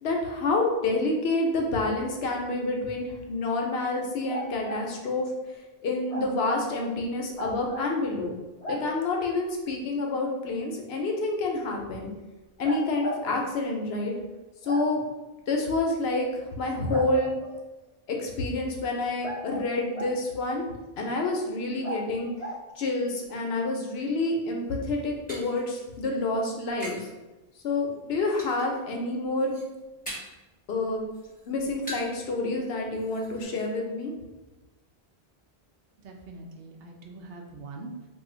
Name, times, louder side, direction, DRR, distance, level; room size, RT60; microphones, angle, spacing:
voice 1, 0.0-5.3 5.8-8.3 8.7-12.1 12.6-14.1 14.6-15.0 15.5-17.3 18.1-20.6 21.0-22.3 22.8-27.0 27.6-29.5 30.7-31.0 31.5-34.1, left 2 dB, 80° left, 1 dB, 0.9 m, -28 dB
sound 1, 4.3-4.8 6.1-6.6 7.4-7.9 8.6-8.8 10.6-10.7 12.6-13.2 14.6-14.9 16.9-17.6 19.2-20.2 21.8-22.0 22.4-22.6, right 1 dB, 45° left, 0.6 m, -36 dB
sound 2, 24.6-27.1 27.4-27.9 28.4-28.9 29.2-30.5 30.8-32.2 32.6-32.7 32.9-33.4, equal, 10° left, 0.9 m, -42 dB
voice 2, 36.0-38.1, right 3 dB, 70° right, 1 dB, 0.8 m, -43 dB
2.5 x 2.4 x 3.7 m, 1.1 s
omnidirectional pair, 1.0 m